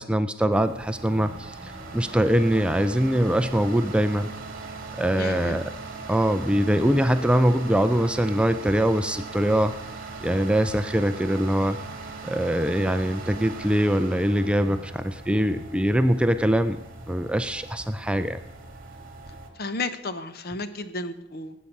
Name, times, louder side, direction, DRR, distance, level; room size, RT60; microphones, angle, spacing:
voice 1, 0.0-4.3 5.0-5.6 6.1-9.7 10.2-11.8 12.2-16.8 17.1-18.4, equal, 5° right, 10 dB, 0.4 m, -23 dB
sound 1, 0.5-19.5, right 3 dB, 45° right, 2.0 m, -39 dB
voice 2, 5.2-5.6 19.6-21.6, left 3 dB, 50° left, 12 dB, 0.8 m, -32 dB
18.0 x 8.4 x 5.3 m, 0.85 s
head